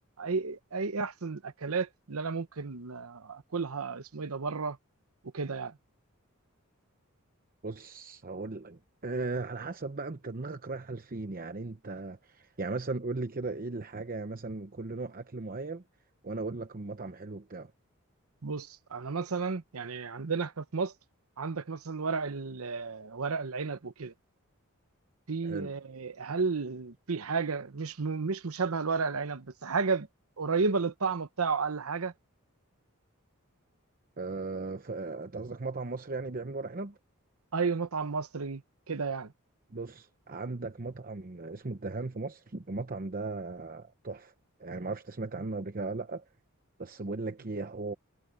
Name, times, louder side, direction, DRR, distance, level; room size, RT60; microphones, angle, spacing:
voice 1, 0.2-4.8 5.3-5.8 18.4-20.9 21.4-24.1 25.3-30.1 30.4-32.1 37.5-38.6 38.9-39.3, right 4 dB, 90° right, 0.9 m, -32 dB
voice 2, 7.6-15.8 16.2-17.7 25.4-25.7 34.2-37.0 39.7-44.3 44.6-46.3 46.8-47.9, right 3 dB, 40° right, 0.8 m, -37 dB
head